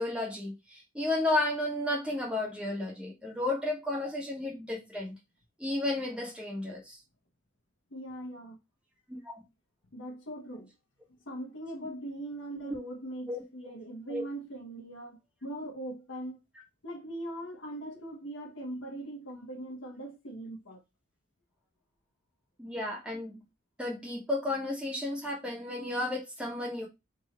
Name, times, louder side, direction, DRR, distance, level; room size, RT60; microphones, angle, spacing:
voice 1, 0.0-5.1 5.6-7.0 9.1-9.4 12.6-12.7 13.3-13.4 14.1-14.2 22.6-23.4 23.8-26.9, left 2 dB, 5° right, 1.3 m, -33 dB
voice 2, 7.9-8.6 9.9-10.7 11.3-16.4 16.8-20.8, right 1 dB, 75° left, 1.1 m, -40 dB
3.7 x 3.0 x 4.3 m
head